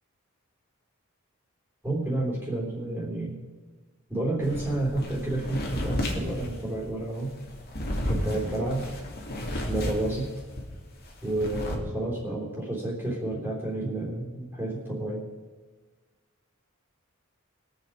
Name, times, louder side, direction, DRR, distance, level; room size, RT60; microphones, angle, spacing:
voice 1, 1.8-3.4 4.1-7.3 8.1-8.9 9.5-10.3 11.2-15.2, right 2 dB, 10° right, -3 dB, 3.4 m, -30 dB
sound 1, 4.4-10.7 11.0-11.8, left 1 dB, 45° left, 2.4 m, -32 dB
22.5 x 8.1 x 4.9 m, 1.3 s
head